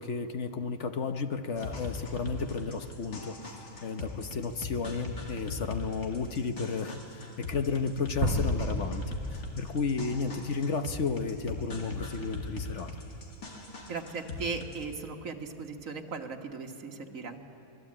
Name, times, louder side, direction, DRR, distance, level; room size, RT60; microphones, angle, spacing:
voice 1, 0.0-3.4 3.8-12.9, left 4 dB, 55° left, 7 dB, 1.2 m, -33 dB
sound 1, 1.6-14.8, left 3 dB, 70° left, 2.8 m, -41 dB
sound 2, 8.2-10.6, left 1 dB, 25° left, 1.9 m, -32 dB
voice 2, 13.9-17.4, right 4 dB, 60° right, 3 dB, 1.9 m, -37 dB
25.0 x 20.5 x 8.7 m, 2.9 s
omnidirectional pair, 1.6 m